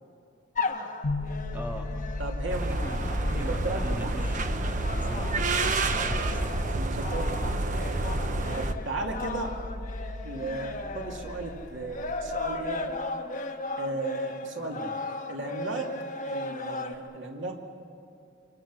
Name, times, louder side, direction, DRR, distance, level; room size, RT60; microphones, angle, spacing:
sound 1, 0.5-16.9, left 3 dB, 45° left, 1.5 m, -37 dB
sound 2, 1.0-13.1, left 2 dB, 85° left, 1.0 m, -38 dB
voice 1, 1.5-1.9 2.4-5.5 6.0-6.5, equal, 10° right, 1 dB, 2.3 m, -40 dB
voice 2, 2.2-2.8 3.2-4.1 5.8-6.0 6.7-7.6 8.5-9.6 10.2-12.9 13.8-14.9 15.3-15.9 16.3-17.5, right 2 dB, 80° right, 2 dB, 2.5 m, -35 dB
sound 3, 2.5-8.7, right 2 dB, 45° right, 1.0 m, -29 dB
25.5 x 25.0 x 6.2 m, 2.6 s
head